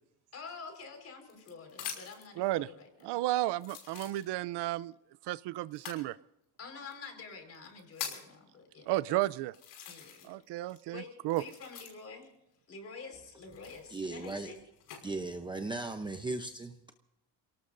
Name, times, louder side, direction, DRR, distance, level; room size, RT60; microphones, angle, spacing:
voice 1, 0.3-3.2 6.6-9.2 9.9-10.4 10.9-12.3 12.7-14.6, left 4 dB, 40° left, 4.8 m, -48 dB
sound 1, 0.6-2.3 3.0-3.1 3.6-4.6 5.7-6.0 6.9-7.0 7.5-8.3 9.0-9.1 9.5-10.4 10.7-12.2 13.5-15.0 15.7-16.1, left 9 dB, 80° left, 5.8 m, -44 dB
voice 2, 2.4-2.7 3.0-4.9 5.3-6.2 8.9-9.5 10.3-11.4, right 16 dB, 85° right, 0.6 m, -32 dB
voice 3, 13.9-14.5 15.0-16.9, right 2 dB, 10° right, 0.7 m, -37 dB
29.0 x 18.5 x 2.6 m
cardioid pair, 180°, 40 cm